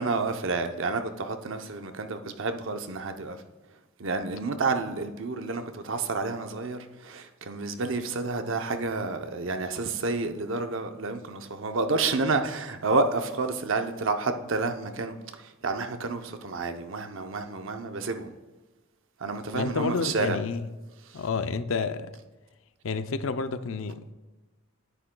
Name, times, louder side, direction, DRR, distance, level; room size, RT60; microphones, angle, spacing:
voice 1, 0.0-3.4 4.0-18.3 19.2-20.4 21.1-21.2, right 3 dB, 60° right, 0.7 m, -30 dB
voice 2, 19.5-20.7 21.1-22.1 22.8-24.1, left 4 dB, 65° left, 0.5 m, -30 dB
10.0 x 9.7 x 2.2 m
head